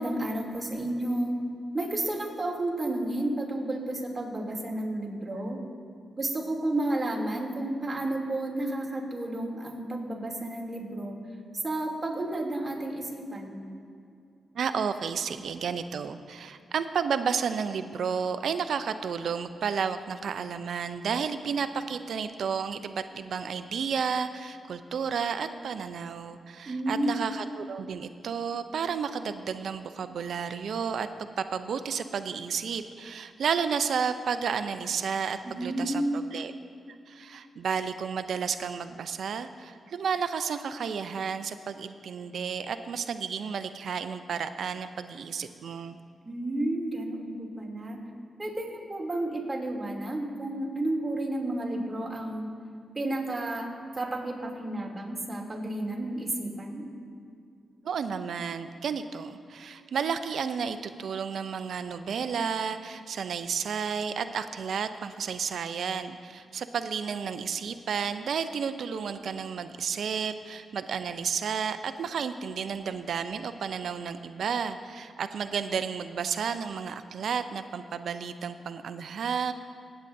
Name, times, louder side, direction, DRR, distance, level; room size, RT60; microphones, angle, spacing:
voice 1, 0.0-1.4 1.7-5.6 6.2-11.1 11.6-13.6 26.7-27.1 35.4-36.2 46.2-48.0 48.4-52.5 52.9-56.8, right 1 dB, 25° right, -3 dB, 2.8 m, -31 dB
voice 2, 14.5-31.1 31.4-36.5 37.1-46.0 57.8-79.5, right 6 dB, 75° right, 11 dB, 0.5 m, -32 dB
18.0 x 8.8 x 2.7 m, 2.5 s
supercardioid pair, 50°, 0 cm